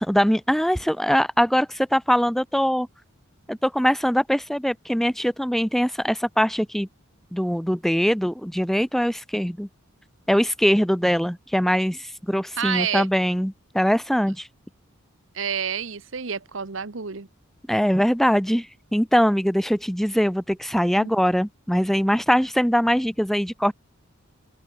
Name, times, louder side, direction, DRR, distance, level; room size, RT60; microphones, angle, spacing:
voice 1, 0.0-2.9 3.5-6.9 7.3-9.7 10.3-14.5 17.7-18.7 18.9-23.7, equal, ahead, 1.3 m, -22 dB
voice 2, 12.6-13.1 15.3-17.3 20.9-21.1, right 7 dB, 65° right, 1.1 m, -28 dB
head